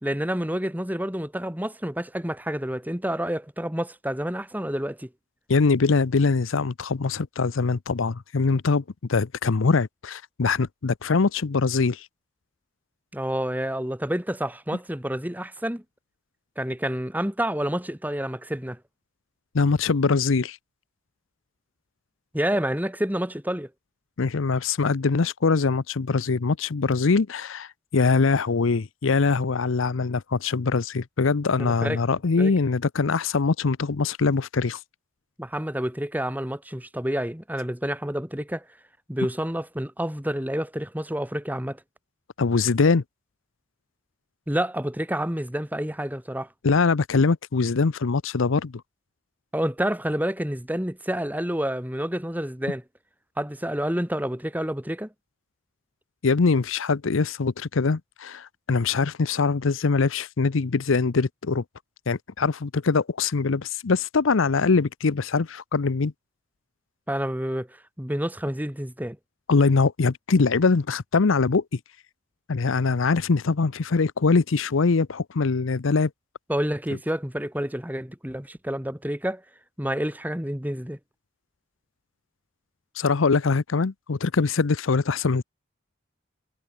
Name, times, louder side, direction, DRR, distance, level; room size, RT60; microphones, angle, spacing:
voice 1, 0.0-5.1 13.1-15.8 16.6-18.8 22.3-23.7 31.6-32.0 32.4-32.5 35.4-38.6 39.1-41.8 44.5-46.5 49.5-52.8 53.4-55.1 67.1-67.7 68.0-69.2 76.5-79.4 79.8-81.0, equal, 10° right, 2.2 m, -28 dB
voice 2, 5.5-8.8 9.1-12.1 19.5-20.6 24.2-34.8 42.4-43.0 46.6-48.7 56.2-61.6 62.1-66.1 69.5-71.8 72.5-76.1 83.0-85.4, left 4 dB, 70° left, 0.6 m, -23 dB
head